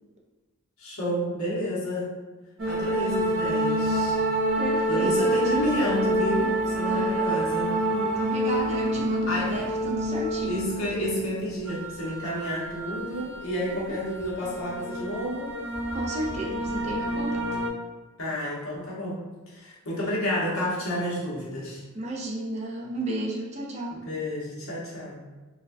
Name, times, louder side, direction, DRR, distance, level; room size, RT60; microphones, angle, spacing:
voice 1, 0.8-2.1 2.7-4.2 4.9-7.8 9.3-9.5 10.5-15.5 18.2-19.2 19.5-21.8 24.0-25.2, left 1 dB, 70° left, -6 dB, 1.1 m, -30 dB
sound 1, 2.6-17.7, right 1 dB, 60° right, 0.7 m, -28 dB
voice 2, 4.6-5.3 6.8-7.2 7.9-10.6 13.7-14.0 15.9-17.5 21.9-24.0, right 1 dB, 30° right, -1 dB, 0.4 m, -33 dB
4.0 x 2.2 x 2.6 m, 1.2 s
head